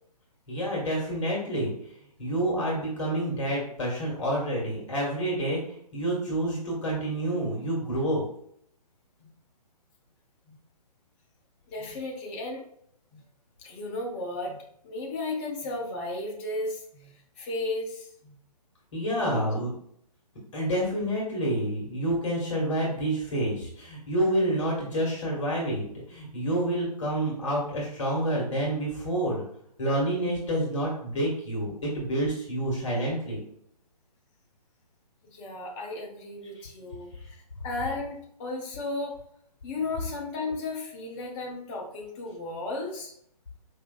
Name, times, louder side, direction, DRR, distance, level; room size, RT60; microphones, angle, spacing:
voice 1, 0.5-1.7 2.2-8.2 18.9-19.7 20.5-29.4 29.8-33.4 36.6-36.7, right 1 dB, 45° left, -4 dB, 1.5 m, -28 dB
voice 2, 11.7-12.6 13.1-13.2 13.6-18.4 19.1-19.5 35.3-37.4 37.6-39.2 39.6-43.1, left 2 dB, 20° left, -1 dB, 0.5 m, -34 dB
4.7 x 3.2 x 2.3 m, 0.69 s
figure-of-eight pair, 135°, 21 cm